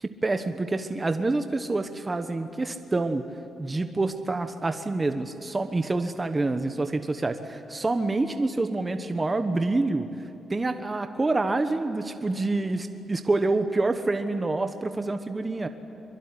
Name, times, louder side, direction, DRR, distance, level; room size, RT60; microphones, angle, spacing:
voice 1, 0.0-3.2 3.6-10.1 10.5-15.7, right 2 dB, 20° right, 7 dB, 1.2 m, -27 dB
24.0 x 23.0 x 9.9 m, 2.9 s
cardioid pair, 130°, 0 cm